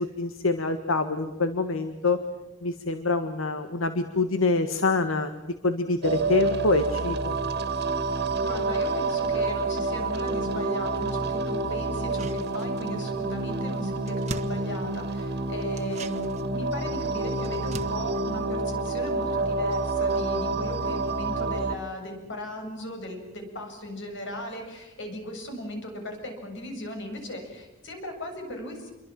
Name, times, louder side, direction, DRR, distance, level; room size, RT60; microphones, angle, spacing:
voice 1, 0.0-2.2 2.6-7.4, left 3 dB, 80° left, 8 dB, 1.6 m, -26 dB
sound 1, 6.0-21.7, right 3 dB, 55° right, 2.0 m, -28 dB
voice 2, 8.4-28.9, left 1 dB, 65° left, 4 dB, 7.5 m, -37 dB
sound 2, 11.9-13.1 13.4-13.5 13.7-15.3 15.7-19.4 19.7-19.8, right 3 dB, 35° right, 1.5 m, -43 dB
28.5 x 23.5 x 7.6 m, 1.0 s
head